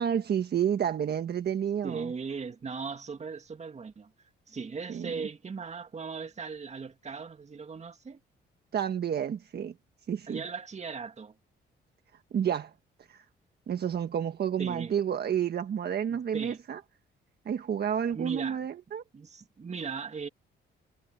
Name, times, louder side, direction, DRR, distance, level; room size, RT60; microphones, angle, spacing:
voice 1, 0.0-2.1 4.9-5.3 8.7-9.7 10.1-10.4 12.3-12.7 13.1-13.2 13.7-16.8 17.4-19.0, right 8 dB, 55° right, 1.5 m, -30 dB
voice 2, 1.8-4.1 4.5-8.2 10.3-11.4 14.6-15.0 16.1-16.6 18.1-18.7 19.1-20.3, right 5 dB, 35° right, 2.2 m, -38 dB
cardioid pair, 90°, 20 cm